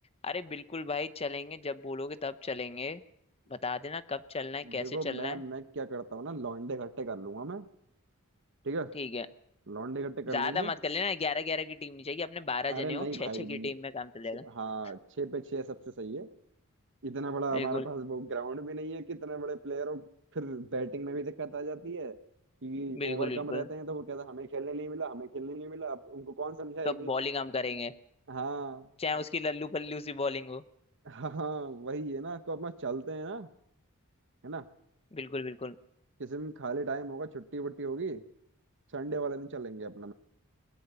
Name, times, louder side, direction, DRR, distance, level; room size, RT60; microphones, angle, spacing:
voice 1, 0.2-3.0 3.5-5.4 8.9-9.3 10.3-14.5 17.5-17.9 22.9-23.7 26.8-27.9 29.0-30.6 35.1-35.8, left 4 dB, 25° left, 14 dB, 0.8 m, -34 dB
voice 2, 4.6-7.7 8.6-8.9 9.7-10.7 12.7-13.7 14.4-16.3 17.0-20.0 20.3-22.2 22.6-27.1 28.3-28.9 31.0-33.5 34.4-34.6 36.2-38.2 38.9-40.1, right 3 dB, 55° right, 12 dB, 1.1 m, -36 dB
21.0 x 20.0 x 6.9 m, 0.75 s
head